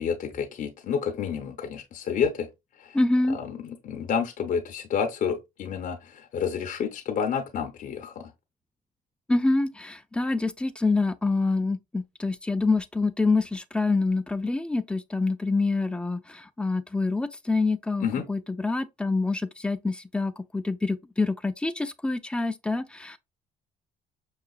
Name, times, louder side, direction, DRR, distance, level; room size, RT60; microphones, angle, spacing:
voice 1, 0.0-2.5 2.8-3.0 3.3-8.3 18.0-18.3, left 7 dB, 50° left, 0.7 m, -29 dB
voice 2, 2.9-3.4 9.3-23.2, left 3 dB, 5° left, 0.3 m, -26 dB
5.7 x 2.3 x 2.3 m
cardioid pair, 110°, 17 cm